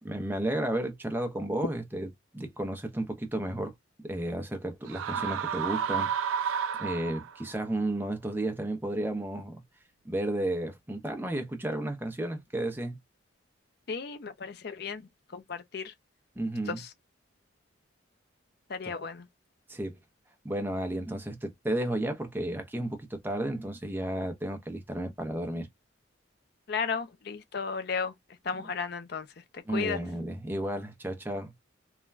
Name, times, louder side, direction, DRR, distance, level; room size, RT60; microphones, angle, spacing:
voice 1, 0.0-2.1 2.3-3.7 4.0-9.6 10.0-13.0 16.4-16.8 19.7-20.0 20.4-25.7 29.7-31.5, right 1 dB, 10° right, 0.5 m, -33 dB
sound 1, 4.9-7.5, right 8 dB, 80° right, 0.3 m, -31 dB
voice 2, 13.9-15.9 16.7-16.9 18.7-19.3 26.7-28.1 28.4-30.0, left 5 dB, 50° left, 0.5 m, -34 dB
3.1 x 2.2 x 2.3 m
head